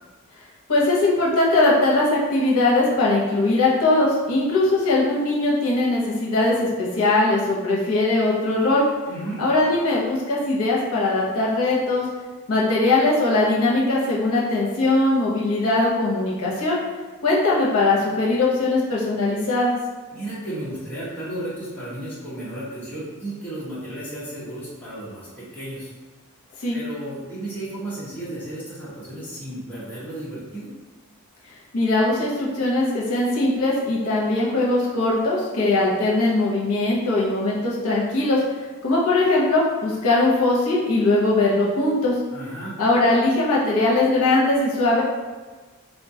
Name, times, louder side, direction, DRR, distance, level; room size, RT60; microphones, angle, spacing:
voice 1, 0.7-8.8 9.4-12.1 12.5-16.8 17.2-19.7 26.6-26.8 31.7-38.4 38.8-42.1 42.8-45.0, left 2 dB, 75° left, -5 dB, 0.7 m, -20 dB
voice 2, 9.1-9.4 20.1-25.9 26.7-30.7 42.3-42.8, right 1 dB, 5° left, -11 dB, 1.0 m, -33 dB
3.4 x 2.2 x 2.7 m, 1.3 s
head